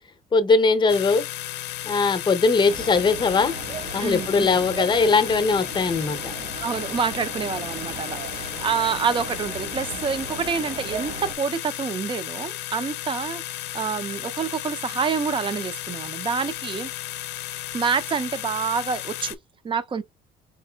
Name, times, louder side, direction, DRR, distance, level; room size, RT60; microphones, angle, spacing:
voice 1, 0.3-1.2 1.8-3.5 3.9-6.2, left 4 dB, 25° left, 0.7 m, -20 dB
sound 1, 0.9-19.4, left 14 dB, 85° left, 0.5 m, -34 dB
sound 2, 2.7-11.4, right 4 dB, 65° right, 1.5 m, -37 dB
voice 2, 4.0-4.6 6.6-13.4 13.7-16.9 17.7-19.4 19.6-20.0, right 6 dB, 30° right, 0.5 m, -27 dB
4.1 x 3.8 x 2.3 m
cardioid pair, 110°, 17 cm